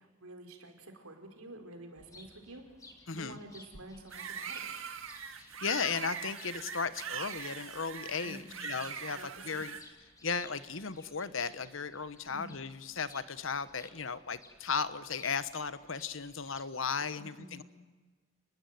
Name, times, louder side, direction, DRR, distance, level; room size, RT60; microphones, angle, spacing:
voice 1, 0.0-2.6 3.1-4.7 8.2-8.7 9.1-9.7 12.3-12.5 17.2-17.6, right 1 dB, 90° right, 4 dB, 4.4 m, -49 dB
sound 1, 2.0-16.6, left 2 dB, 15° left, 2.8 m, -58 dB
voice 2, 3.1-3.4 5.4-9.2 9.4-9.8 10.2-17.6, left 5 dB, 65° left, 14 dB, 1.1 m, -36 dB
sound 2, 4.1-9.8, right 7 dB, 70° right, 1.9 m, -41 dB
29.5 x 20.0 x 9.4 m, 1.3 s
head